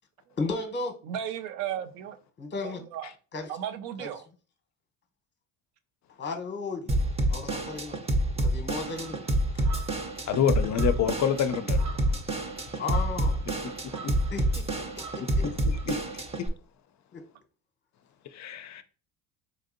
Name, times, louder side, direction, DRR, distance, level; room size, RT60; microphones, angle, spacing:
voice 1, 0.4-1.0 2.4-2.8 3.3-3.5 4.0-4.1 6.2-7.0 7.3-8.0 8.3-9.3 9.5-9.6 12.8-13.5 14.3-14.7 15.0-15.5 17.1-17.2, left 4 dB, 25° left, 0.8 m, -34 dB
voice 2, 1.0-2.2 2.6-3.1 3.5-4.3, right 10 dB, 90° right, 0.5 m, -35 dB
Drum kit / Drum, 6.9-16.5, right 1 dB, 15° right, 0.5 m, -28 dB
sound 1, 8.9-15.9, right 5 dB, 60° right, 0.9 m, -47 dB
voice 3, 10.3-11.9 15.9-16.0 16.4-16.5 18.3-18.8, left 8 dB, 40° left, 0.4 m, -27 dB
4.1 x 2.6 x 2.5 m
supercardioid pair, 90°, 43 cm